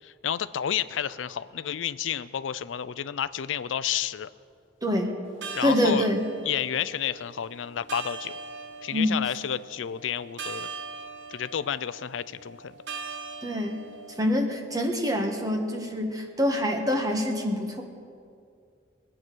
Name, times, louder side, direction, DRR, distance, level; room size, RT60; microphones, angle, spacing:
voice 1, 0.0-4.3 5.5-6.1 6.5-8.3 8.8-10.7 11.3-12.7, left 9 dB, 90° left, 15 dB, 0.4 m, -30 dB
voice 2, 4.8-5.1 5.6-6.2 8.9-9.2 13.4-13.8 14.2-17.8, equal, 20° right, 3 dB, 1.5 m, -25 dB
sound 1, 5.2-14.3, right 4 dB, 70° right, 1.2 m, -41 dB
21.5 x 8.9 x 6.2 m, 2.3 s
head